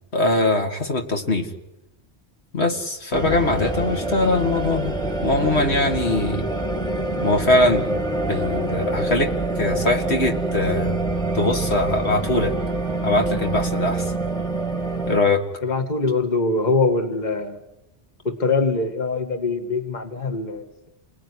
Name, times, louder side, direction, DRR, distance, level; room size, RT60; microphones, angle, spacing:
voice 1, 0.1-1.5 2.5-4.9 5.2-6.5 7.2-9.3 9.6-11.0 11.3-12.5 13.0-14.1 15.1-15.4, left 2 dB, 65° left, 4 dB, 2.5 m, -22 dB
sound 1, 3.1-15.2, right 2 dB, 5° left, 2.4 m, -26 dB
voice 2, 15.6-17.6 18.2-20.9, left 3 dB, 40° left, 6 dB, 2.1 m, -23 dB
29.5 x 19.5 x 9.9 m, 0.96 s
omnidirectional pair, 1.2 m